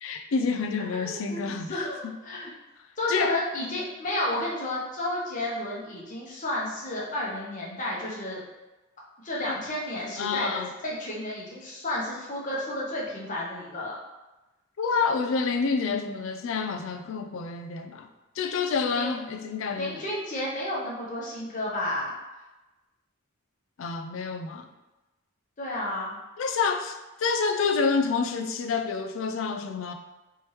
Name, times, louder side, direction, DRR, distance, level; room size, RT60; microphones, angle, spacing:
voice 1, 0.0-2.2 3.1-3.8 9.5-9.6 10.2-10.7 14.8-18.1 18.4-20.0 23.8-24.7 26.4-29.9, left 5 dB, 70° left, 6 dB, 0.4 m, -28 dB
voice 2, 0.8-1.4 1.7-2.5 3.0-8.4 9.2-14.0 18.9-19.1 19.8-22.1 25.6-26.2, left 1 dB, 40° left, -5 dB, 0.9 m, -32 dB
3.4 x 3.0 x 3.1 m, 1.1 s
head